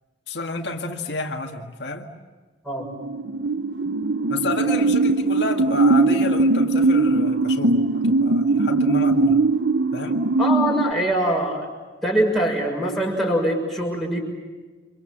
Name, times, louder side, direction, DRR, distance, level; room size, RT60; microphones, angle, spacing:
voice 1, 0.3-2.1 4.3-9.4 9.9-10.2, left 2 dB, 70° left, 2 dB, 2.0 m, -30 dB
sound 1, 2.8-10.9, right 3 dB, 80° right, 0.9 m, -20 dB
voice 2, 10.4-11.7 12.0-14.2, equal, ahead, -1 dB, 6.3 m, -23 dB
29.5 x 25.0 x 7.5 m, 1.3 s
head